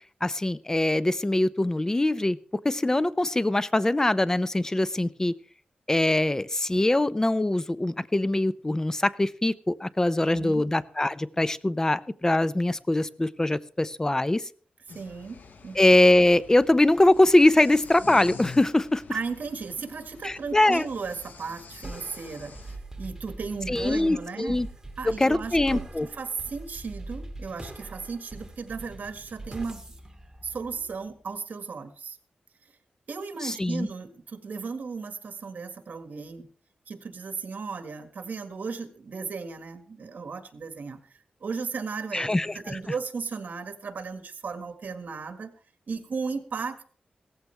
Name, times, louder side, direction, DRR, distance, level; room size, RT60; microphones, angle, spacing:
voice 1, 0.2-2.4 2.6-5.3 5.9-14.4 15.8-19.0 20.2-20.9 23.7-24.7 25.0-26.1 33.4-33.9 42.1-42.8, left 1 dB, 20° left, 16 dB, 0.6 m, -23 dB
voice 2, 10.3-10.6 14.9-15.8 19.1-24.6 25.0-29.8 30.4-32.2 33.1-36.5 36.9-45.5 45.9-46.8, right 5 dB, 75° right, 7 dB, 1.8 m, -35 dB
sound 1, 14.9-22.8, left 5 dB, 75° left, 1.4 m, -46 dB
sound 2, 21.8-31.3, right 2 dB, 15° right, 2.8 m, -42 dB
17.0 x 14.5 x 3.4 m, 0.42 s
wide cardioid pair, 90°, 3 cm